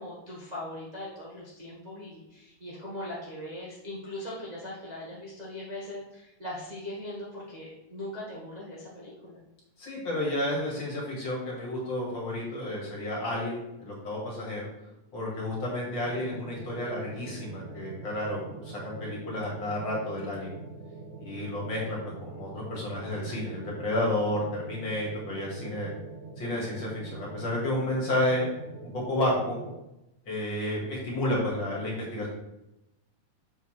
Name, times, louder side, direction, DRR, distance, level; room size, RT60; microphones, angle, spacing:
voice 1, 0.0-9.4, left 1 dB, 85° right, -7 dB, 0.3 m, -40 dB
voice 2, 9.8-14.7 15.1-20.5 21.2-25.9 26.4-28.5 28.9-29.6 30.3-32.3, left 1 dB, 40° left, -3 dB, 2.3 m, -31 dB
sound 1, 16.0-29.8, right 4 dB, 55° right, 1.6 m, -44 dB
7.0 x 6.6 x 3.3 m, 0.89 s
omnidirectional pair, 3.9 m